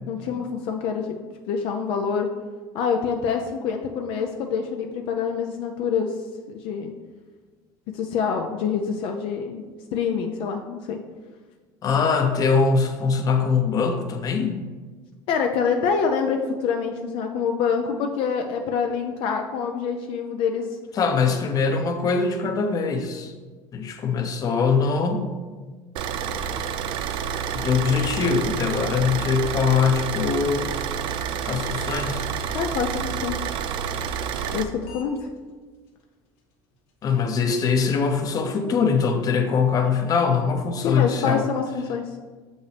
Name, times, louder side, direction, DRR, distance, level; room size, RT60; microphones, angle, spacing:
voice 1, 0.1-1.1 1.5-2.3 2.7-6.2 6.5-6.9 7.9-9.6 9.9-11.0 15.3-20.7 32.5-33.4 34.5-35.3 40.8-42.1, left 6 dB, 65° left, 4 dB, 0.5 m, -26 dB
voice 2, 11.8-14.7 20.9-23.3 23.7-25.3 27.5-30.7 31.4-32.3 37.0-41.4, left 5 dB, 40° left, 5 dB, 0.8 m, -22 dB
Car / Idling, 26.0-34.6, right 7 dB, 60° right, 0.5 m, -29 dB
sound 1, 31.9-32.3 32.8-32.9 34.3-34.5 34.8-35.0 35.4-35.5 35.9-36.0 36.4-36.5 36.7-37.1, left 8 dB, 85° left, 1.2 m, -46 dB
6.6 x 5.3 x 3.4 m, 1.4 s
cardioid pair, 120°, 10 cm